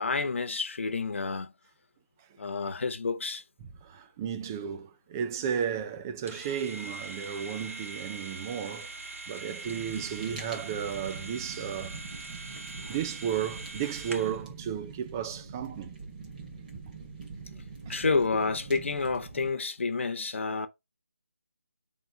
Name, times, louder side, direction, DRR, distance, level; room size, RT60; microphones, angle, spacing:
voice 1, 0.0-1.5 2.4-3.4 12.8-12.9 17.9-20.7, left 4 dB, 60° left, 1.1 m, -29 dB
voice 2, 3.6-12.0 12.9-15.9 17.9-18.0, right 8 dB, 15° right, 0.4 m, -34 dB
sound 1, 6.3-14.4, right 3 dB, 75° right, 1.9 m, -42 dB
Fire, 9.6-19.5, right 4 dB, 35° right, 2.3 m, -44 dB
11.0 x 3.8 x 2.4 m
figure-of-eight pair, 165°, 8 cm